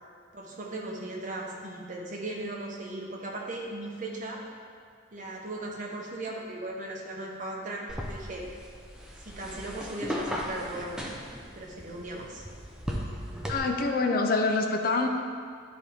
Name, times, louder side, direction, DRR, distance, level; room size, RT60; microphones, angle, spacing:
voice 1, 0.3-4.4 5.1-8.4 9.2-11.1 11.5-12.4, right 2 dB, 40° right, -2 dB, 1.0 m, -37 dB
sound 1, 7.9-13.6, equal, 5° right, 0.6 m, -37 dB
voice 2, 13.5-15.1, left 3 dB, 45° left, 4 dB, 0.5 m, -25 dB
11.0 x 4.4 x 3.4 m, 2.1 s
head